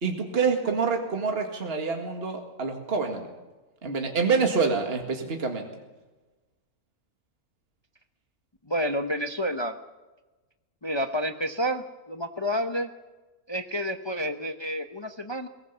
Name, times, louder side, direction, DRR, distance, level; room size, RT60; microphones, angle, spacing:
voice 1, 0.0-3.3 3.8-5.7, right 5 dB, 40° right, 3 dB, 2.1 m, -26 dB
voice 2, 8.7-9.7 10.8-12.9 13.5-15.5, equal, 25° left, 7 dB, 0.8 m, -29 dB
21.5 x 19.0 x 6.9 m, 1.2 s
omnidirectional pair, 1.5 m